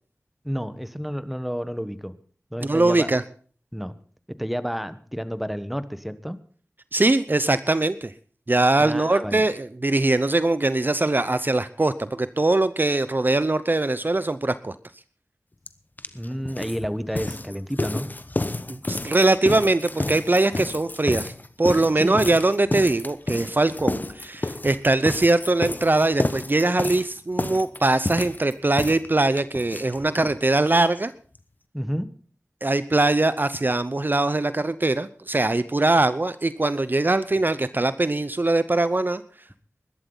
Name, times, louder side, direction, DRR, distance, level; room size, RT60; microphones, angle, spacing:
voice 1, 0.4-2.2 2.5-3.1 3.7-3.9 4.4-6.4 8.8-9.4 16.1-18.1 22.0-22.3 31.7-32.1, equal, ahead, 13 dB, 1.2 m, -30 dB
voice 2, 2.6-3.2 6.9-8.1 8.5-14.7 18.7-31.1 32.6-39.2, right 2 dB, 40° right, 14 dB, 0.7 m, -22 dB
sound 1, 15.7-15.8 16.0-30.4 30.6-30.7 31.0-31.1 31.3-31.4, left 2 dB, 35° left, 1.0 m, -30 dB
21.0 x 12.0 x 4.0 m, 0.43 s
wide cardioid pair, 65°, 5 cm